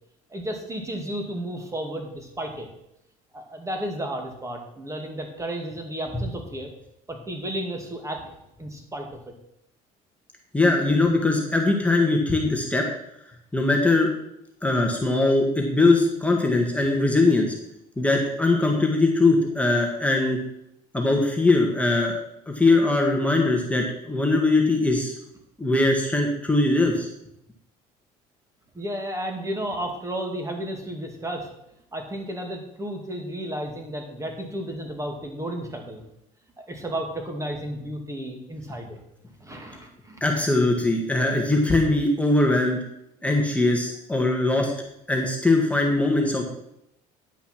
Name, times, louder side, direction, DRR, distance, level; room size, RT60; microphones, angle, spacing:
voice 1, 0.3-2.7 3.3-6.7 7.1-8.3 8.6-9.1 28.7-31.5 31.9-36.0 36.6-39.0 39.4-40.2, right 1 dB, 15° right, 3 dB, 2.3 m, -33 dB
voice 2, 10.5-12.9 13.5-14.1 14.6-17.5 18.0-20.4 20.9-22.2 22.5-25.1 25.6-27.1 40.2-42.8 43.2-44.7 45.1-46.4, left 2 dB, 5° left, 1 dB, 1.6 m, -21 dB
10.0 x 5.6 x 6.1 m, 0.80 s
supercardioid pair, 100°, 18 cm